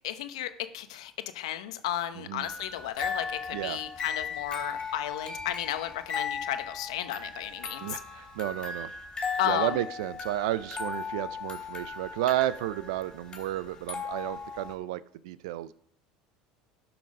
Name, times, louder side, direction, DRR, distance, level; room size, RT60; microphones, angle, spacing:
voice 1, 0.0-8.0 9.4-9.8, left 12 dB, 85° left, 10 dB, 0.9 m, -33 dB
voice 2, 2.2-2.5 3.5-3.8 7.8-8.9 9.4-15.7, right 14 dB, 80° right, 17 dB, 0.5 m, -32 dB
sound 1, 2.4-14.7, left 5 dB, 20° left, 3.2 m, -37 dB
12.0 x 6.0 x 5.3 m, 0.64 s
supercardioid pair, 100°, 3 cm